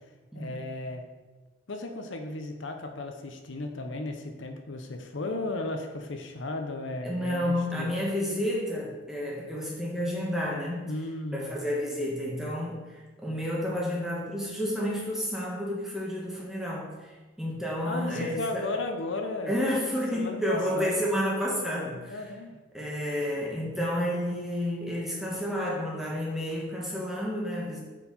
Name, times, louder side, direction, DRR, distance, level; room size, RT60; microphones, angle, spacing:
voice 1, 0.3-1.0 1.7-7.9 10.9-11.5 17.8-19.6 20.1-21.0 22.1-22.6, left 2 dB, 70° left, 5 dB, 0.7 m, -35 dB
voice 2, 7.0-10.9 11.3-17.1 17.4-18.7 19.5-22.3 22.7-27.8, equal, ahead, -4 dB, 1.4 m, -30 dB
9.1 x 4.6 x 4.2 m, 1.2 s
head